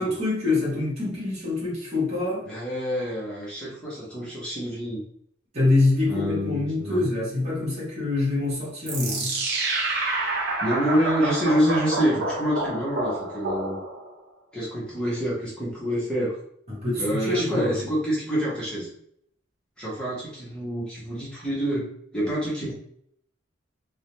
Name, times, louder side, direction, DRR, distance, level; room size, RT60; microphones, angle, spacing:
voice 1, 0.0-2.4 5.5-9.3 16.7-17.8, left 2 dB, 35° right, -7 dB, 0.8 m, -25 dB
voice 2, 2.4-5.0 6.1-7.1 10.6-13.8 14.5-16.3 17.0-18.9 19.8-21.9 22.1-22.7, equal, 5° left, -8 dB, 0.8 m, -27 dB
sound 1, 8.9-14.2, right 2 dB, 55° right, 0.5 m, -28 dB
2.4 x 2.1 x 2.9 m, 0.68 s
head